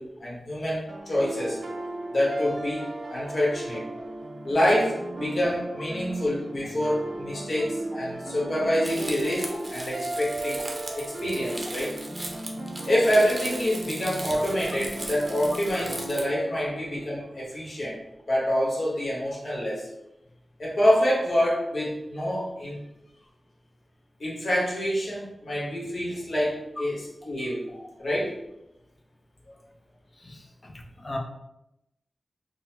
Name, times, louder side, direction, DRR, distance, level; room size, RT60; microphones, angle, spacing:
voice 1, 0.0-1.6 2.1-3.8 4.4-10.6 10.9-12.0 12.8-18.0 18.3-19.9 20.6-22.8 24.2-27.7 28.0-28.3 29.5-29.6, equal, 70° left, -4 dB, 1.2 m, -26 dB
sound 1, 0.9-17.8, right 2 dB, 70° right, 0.5 m, -36 dB
Crumpling crinkling, 8.8-16.3, right 1 dB, 30° right, 0.6 m, -39 dB
voice 2, 30.2-31.2, left 1 dB, 45° left, 1 dB, 0.6 m, -39 dB
3.9 x 2.1 x 2.8 m, 0.87 s
wide cardioid pair, 65°, 0 cm